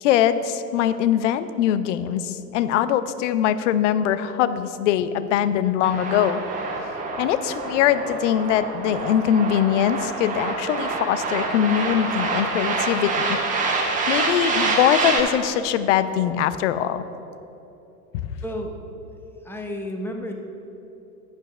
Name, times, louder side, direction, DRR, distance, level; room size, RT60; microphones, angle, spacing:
voice 1, 0.0-6.4 7.2-13.4 14.1-17.0, left 10 dB, 50° left, 13 dB, 0.6 m, -22 dB
sound 1, 5.8-15.2, right 3 dB, 15° right, 1.3 m, -26 dB
voice 2, 18.4-18.7 19.4-20.3, left 1 dB, 5° left, 2 dB, 0.8 m, -31 dB
13.5 x 10.5 x 2.3 m, 3.0 s
figure-of-eight pair, 85°, 49 cm